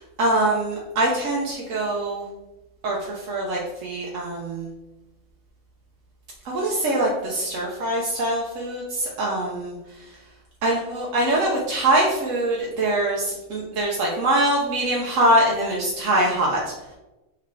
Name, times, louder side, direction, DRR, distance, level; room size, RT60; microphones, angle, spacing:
voice 1, 0.2-2.2 2.8-4.7 6.4-9.8 10.6-16.6, right 1 dB, 85° right, -3 dB, 1.1 m, -23 dB
3.5 x 3.2 x 3.7 m, 1.0 s
omnidirectional pair, 1.3 m